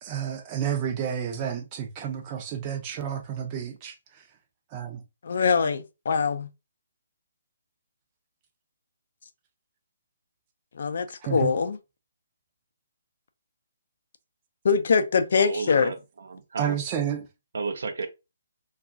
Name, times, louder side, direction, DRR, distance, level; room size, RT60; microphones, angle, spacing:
voice 1, 0.0-4.2 4.7-5.0 11.2-11.5 16.6-17.3, right 8 dB, 25° right, 0.6 m, -31 dB
voice 2, 5.2-6.5 10.8-11.8 14.6-15.9, left 5 dB, 60° left, 0.5 m, -23 dB
voice 3, 15.4-16.8 17.5-18.1, right 4 dB, 70° right, 0.6 m, -33 dB
2.4 x 2.2 x 3.7 m
hypercardioid pair, 155°, 0 cm